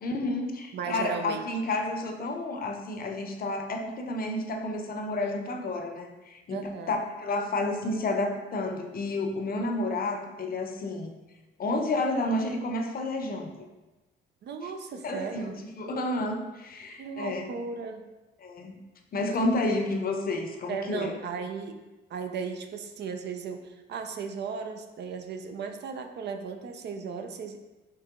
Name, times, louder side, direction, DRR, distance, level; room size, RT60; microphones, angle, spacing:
voice 1, 0.0-11.1 11.6-13.5 14.6-14.7 15.0-17.5 18.4-18.8 19.1-21.1, left 2 dB, 50° left, 4 dB, 0.7 m, -30 dB
voice 2, 0.7-1.5 6.5-7.0 14.4-15.6 17.0-18.1 20.7-21.8 22.1-27.6, right 5 dB, 60° right, 6 dB, 0.5 m, -36 dB
4.6 x 2.9 x 3.7 m, 1.1 s
cardioid pair, 90°, 20 cm